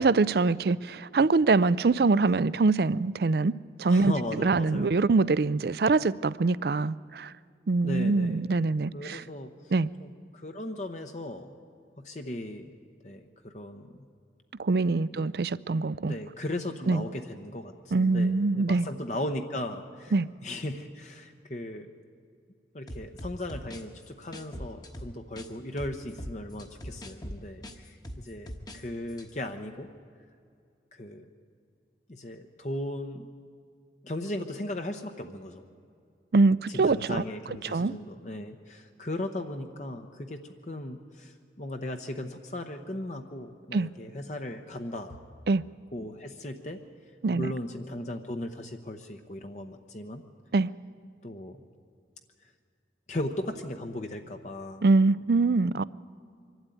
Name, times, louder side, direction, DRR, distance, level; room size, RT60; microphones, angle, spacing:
voice 1, 0.0-7.3 7.7-9.2 9.7-9.9 14.6-16.1 16.9-17.0 17.9-18.9 20.1-20.3 36.3-37.2 37.6-37.9 43.7-43.9 45.5-45.6 47.2-47.5 50.5-50.7 54.8-55.8, right 3 dB, 60° right, 0.4 m, -24 dB
voice 2, 3.9-5.0 7.8-8.4 8.9-9.7 10.0-11.5 12.0-12.7 13.0-13.9 15.1-15.3 16.1-20.1 20.4-21.9 22.7-29.9 30.9-31.3 32.1-33.3 34.0-35.6 36.7-45.2 45.9-46.8 47.3-50.2 51.2-51.6 53.1-54.8, left 1 dB, 40° left, 0.9 m, -37 dB
sound 1, 22.9-25.5 25.8-28.8 29.1-29.3, equal, 20° left, 1.2 m, -41 dB
24.5 x 12.5 x 9.3 m
head